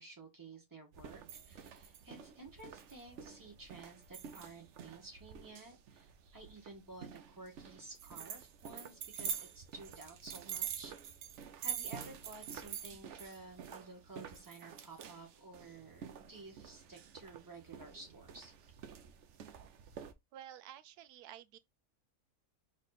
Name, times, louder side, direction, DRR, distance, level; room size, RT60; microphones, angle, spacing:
voice 1, 0.0-10.9 11.6-18.5, right 3 dB, 15° right, 1.5 m, -53 dB
sound 1, 0.9-20.1, right 8 dB, 60° right, 0.8 m, -47 dB
voice 2, 20.3-21.6, right 11 dB, 90° right, 1.1 m, -51 dB
3.5 x 3.2 x 4.0 m
omnidirectional pair, 1.6 m